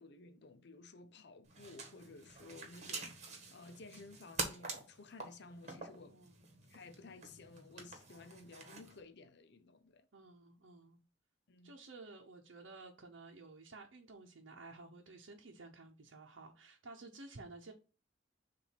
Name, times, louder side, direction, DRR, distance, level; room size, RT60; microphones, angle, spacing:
voice 1, 0.0-6.2 6.7-10.1 11.5-11.8, left 3 dB, 60° left, 0.7 m, -55 dB
sound 1, 1.4-9.0, right 3 dB, 40° right, 1.5 m, -47 dB
voice 2, 6.1-6.5 10.1-11.0 11.6-17.7, right 3 dB, 85° right, 0.8 m, -53 dB
7.1 x 2.6 x 5.8 m
head